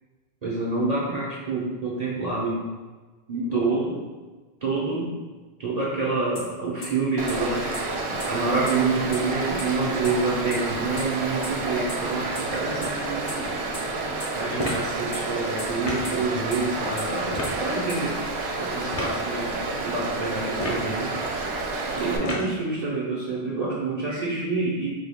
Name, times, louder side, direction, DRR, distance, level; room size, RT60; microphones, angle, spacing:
voice 1, 0.4-2.7 3.3-4.0 4.6-5.2 5.6-7.6 8.3-13.3 14.3-18.2 18.6-21.1 21.9-24.9, right 3 dB, 45° right, -6 dB, 0.7 m, -27 dB
sound 1, 6.4-6.5 6.8-6.9 7.3-7.4 7.7-7.8 8.2-8.3 8.7-8.8 9.1-9.2 9.6-9.7 10.0-10.1 10.5-10.6 11.0-11.1 11.4-11.5 11.9-12.0 12.4-12.5 12.8-12.9 13.3-13.4 13.7-13.8 14.2-14.3 14.7-14.8 15.1-15.2 15.6-15.7 16.0-16.1 16.5-16.6 17.0-17.1 17.4-17.5 17.9-18.0, left 2 dB, 70° left, 1.3 m, -35 dB
Stream, 7.2-22.2, right 3 dB, 75° right, 0.9 m, -30 dB
sound 2, 14.6-14.9 15.8-16.1 17.3-17.6 18.9-19.2 20.5-20.9 22.2-22.6, left 1 dB, 40° left, 0.7 m, -30 dB
4.2 x 2.3 x 3.5 m, 1.3 s
omnidirectional pair, 1.1 m